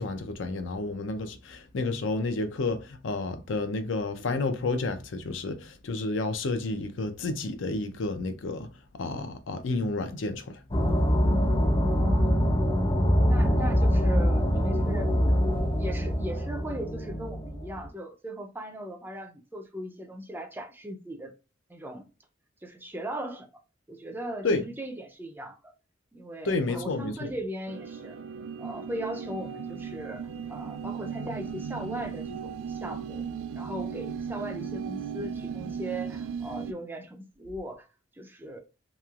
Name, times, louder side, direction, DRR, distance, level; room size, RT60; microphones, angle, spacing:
voice 1, 0.0-8.7 8.9-10.6 24.4-24.6 26.4-27.3, left 3 dB, 75° left, 0.5 m, -30 dB
sound 1, 10.7-17.9, equal, 25° left, 0.6 m, -24 dB
voice 2, 11.9-12.6 13.3-15.1 15.8-21.3 21.7-22.1 22.6-23.5 23.9-25.7 26.1-28.2 28.6-33.3 33.5-37.9 38.2-38.6, right 1 dB, 10° right, 0.4 m, -38 dB
sound 2, 27.7-36.7, right 7 dB, 85° right, 0.4 m, -36 dB
3.0 x 2.9 x 2.3 m
head